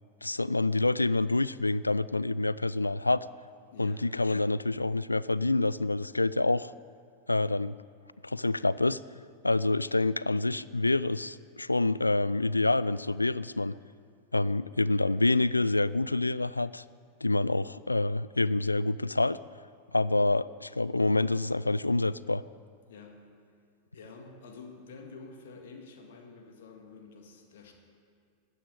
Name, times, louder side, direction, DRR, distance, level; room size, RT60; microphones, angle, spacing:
voice 1, 0.2-3.2 3.8-6.7 7.3-7.7 8.2-9.0 9.4-13.7 14.3-16.8 17.2-19.4 19.9-22.4, left 2 dB, 85° left, 19 dB, 0.3 m, -27 dB
voice 2, 3.7-4.1 9.8-10.1 22.9-23.3 23.9-27.7, left 4 dB, 60° left, 3 dB, 2.0 m, -49 dB
13.5 x 9.8 x 9.0 m, 2.2 s
figure-of-eight pair, 90°, 0 cm